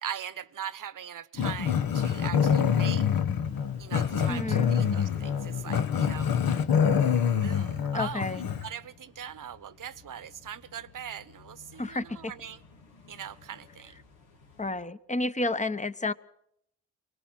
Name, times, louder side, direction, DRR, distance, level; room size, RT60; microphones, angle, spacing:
voice 1, 0.0-3.1 3.8-6.3 7.4-12.6 13.1-14.0, right 9 dB, 55° right, 17 dB, 1.0 m, -41 dB
Growling, 1.4-8.7, left 7 dB, 65° left, 1.2 m, -26 dB
sound 1, 3.4-14.7, left 4 dB, 85° left, 3.2 m, -53 dB
voice 2, 4.3-4.7 7.9-8.4 11.8-12.3 14.6-16.1, left 2 dB, 20° left, 13 dB, 1.0 m, -30 dB
24.0 x 19.0 x 6.2 m, 0.75 s
supercardioid pair, 55°, 37 cm